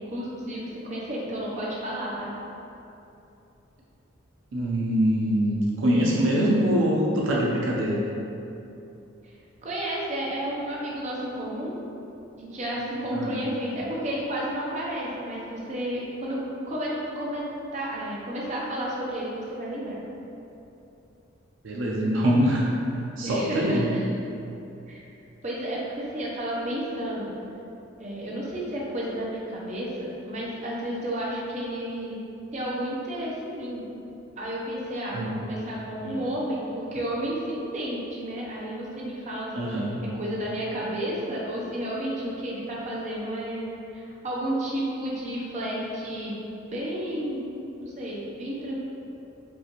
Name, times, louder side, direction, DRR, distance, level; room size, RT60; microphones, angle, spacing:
voice 1, 0.1-2.3 9.6-11.8 12.4-16.4 16.7-17.4 17.7-20.0 23.2-24.0 24.9-25.0 25.4-27.3 28.0-29.9 30.3-32.2 32.5-33.8 34.4-43.7 43.9-46.3 46.7-47.4 47.8-48.8, right 1 dB, 35° right, -5 dB, 0.6 m, -31 dB
voice 2, 4.5-8.0 13.1-13.4 21.6-22.7 23.2-23.9 35.1-35.5 36.0-36.2 39.5-40.0, equal, 70° right, -3 dB, 0.5 m, -24 dB
5.3 x 2.5 x 2.9 m, 2.8 s
head